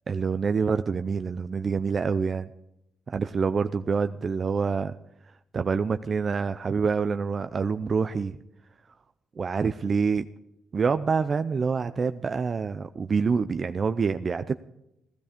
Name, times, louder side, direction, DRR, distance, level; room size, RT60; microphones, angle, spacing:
voice 1, 0.1-2.5 3.1-4.9 5.3-8.4 9.4-10.3 10.7-14.5, right 5 dB, 40° right, 10 dB, 0.6 m, -26 dB
16.0 x 12.5 x 5.1 m, 0.83 s
cardioid pair, 90°, 0 cm